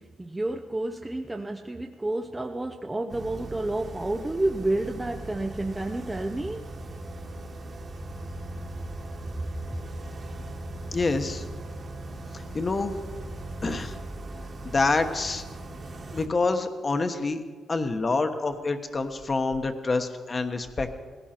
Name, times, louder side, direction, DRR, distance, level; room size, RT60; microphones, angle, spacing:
voice 1, 0.0-6.7 8.6-8.7, right 2 dB, 15° right, 4 dB, 0.7 m, -30 dB
sound 1, 3.1-16.3, right 1 dB, 40° right, 2.0 m, -39 dB
voice 2, 10.9-11.4 12.5-13.0 13.6-13.9 14.6-15.4 16.1-17.4 17.7-20.9, left 3 dB, 30° left, 7 dB, 1.2 m, -27 dB
19.5 x 16.5 x 4.5 m, 1.5 s
cardioid pair, 100°, 0 cm